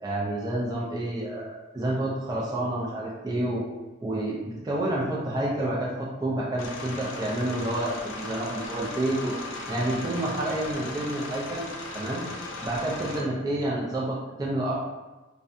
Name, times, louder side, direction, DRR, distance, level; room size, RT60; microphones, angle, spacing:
voice 1, 0.0-3.6 4.0-9.3 9.7-11.7 11.9-12.2 12.6-14.8, right 1 dB, 20° right, -5 dB, 0.3 m, -29 dB
sound 1, 6.6-13.2, left 2 dB, 70° left, 0.4 m, -37 dB
2.5 x 2.1 x 2.4 m, 1.1 s
head